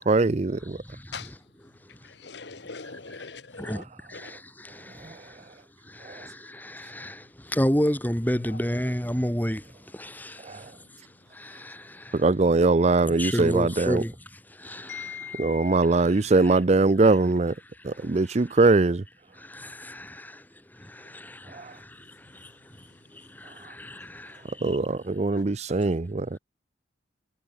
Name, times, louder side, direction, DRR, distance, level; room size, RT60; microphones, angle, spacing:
voice 1, 0.1-0.6 12.2-14.0 15.4-17.5 17.9-19.0 24.6-26.3, right 3 dB, 35° right, 0.5 m, -21 dB
voice 2, 0.6-1.4 3.2-3.3 3.6-5.5 5.8-12.3 13.0-16.6 17.0-17.2 17.8-18.7 19.3-24.8, equal, 10° left, 4.4 m, -33 dB
voice 3, 2.0-3.8 4.1-4.3 14.9-15.8, left 5 dB, 70° left, 1.5 m, -40 dB
head